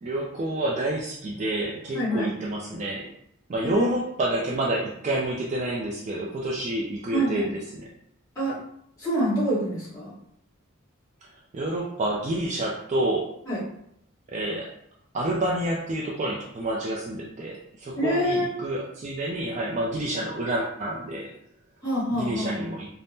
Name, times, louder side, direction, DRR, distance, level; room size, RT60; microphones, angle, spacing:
voice 1, 0.0-3.1 3.5-7.9 11.2-13.3 14.3-14.7 15.1-21.3 22.1-22.9, right 1 dB, 35° right, -3 dB, 0.3 m, -29 dB
voice 2, 1.9-2.3 3.6-3.9 7.1-7.5 8.3-8.6 9.0-10.1 13.5-13.6 18.0-18.5 21.8-22.6, equal, 15° left, -11 dB, 1.2 m, -26 dB
3.4 x 2.0 x 2.7 m, 0.71 s
head